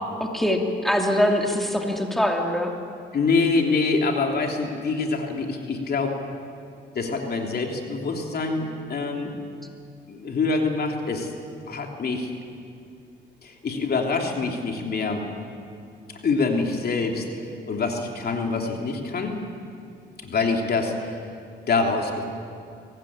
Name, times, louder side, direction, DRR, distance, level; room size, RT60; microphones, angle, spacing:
voice 1, 0.2-2.7, left 1 dB, ahead, 1 dB, 2.7 m, -23 dB
voice 2, 3.1-6.2 6.9-9.3 10.1-11.3 11.7-12.3 13.4-15.2 16.2-17.3 17.6-19.4 20.2-21.1 21.7-22.2, left 4 dB, 50° left, 2 dB, 3.1 m, -25 dB
23.5 x 18.5 x 8.8 m, 2.5 s
cardioid pair, 90°, 20 cm